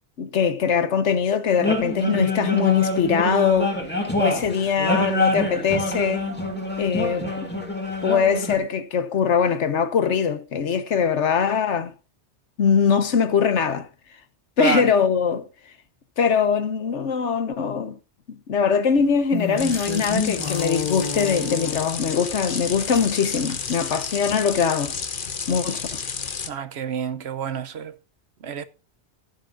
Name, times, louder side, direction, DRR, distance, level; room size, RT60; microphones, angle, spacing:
voice 1, 0.2-3.8 4.2-6.3 6.8-7.3 8.0-11.9 12.6-13.9 14.6-15.5 16.2-18.0 18.3-24.9 25.5-26.3, left 6 dB, 85° left, 1.4 m, -22 dB
sound 1, 1.6-8.6, left 1 dB, 10° left, 2.6 m, -26 dB
voice 2, 14.6-14.9 26.5-27.9 28.4-28.6, right 7 dB, 70° right, 1.0 m, -28 dB
sound 2, 18.9-22.2 22.7-23.8 24.2-24.3, left 4 dB, 25° left, 1.8 m, -30 dB
sound 3, 19.6-26.5, left 6 dB, 50° left, 1.1 m, -31 dB
16.0 x 10.5 x 2.5 m
omnidirectional pair, 1.2 m